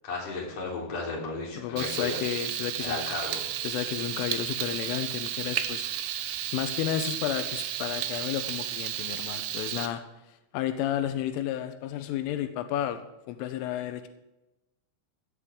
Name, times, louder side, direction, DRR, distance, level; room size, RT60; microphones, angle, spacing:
voice 1, 0.0-2.2 2.8-3.4, left 3 dB, 35° left, -3 dB, 4.5 m, -34 dB
voice 2, 1.6-3.0 3.6-5.9 6.5-10.0 10.5-13.0 13.3-14.1, left 11 dB, 90° left, 8 dB, 3.4 m, -32 dB
Frying (food), 1.8-9.9, right 11 dB, 80° right, 3.2 m, -33 dB
17.0 x 12.5 x 3.7 m, 0.97 s
omnidirectional pair, 5.6 m